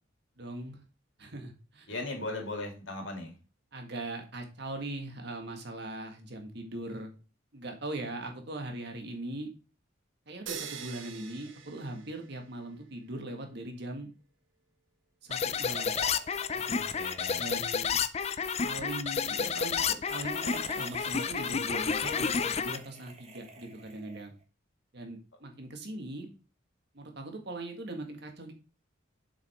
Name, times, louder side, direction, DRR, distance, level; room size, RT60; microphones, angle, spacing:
voice 1, 0.4-0.8 1.2-1.9 3.7-7.1 7.5-9.5 10.3-14.1 15.2-16.0 16.5-16.8 17.4-18.0 18.6-24.3 24.9-26.3 26.9-28.5, right 2 dB, 60° right, 4 dB, 1.8 m, -40 dB
voice 2, 1.9-3.3 16.7-17.5, left 2 dB, 70° left, 2 dB, 2.7 m, -38 dB
sound 1, 10.5-12.6, right 7 dB, 75° right, 1.1 m, -43 dB
sound 2, 15.3-22.8, left 6 dB, 35° left, 0.4 m, -30 dB
sound 3, 15.6-17.8 18.1-18.3 19.4-24.4, right 3 dB, 35° right, 1.3 m, -47 dB
7.4 x 6.2 x 3.6 m, 0.33 s
head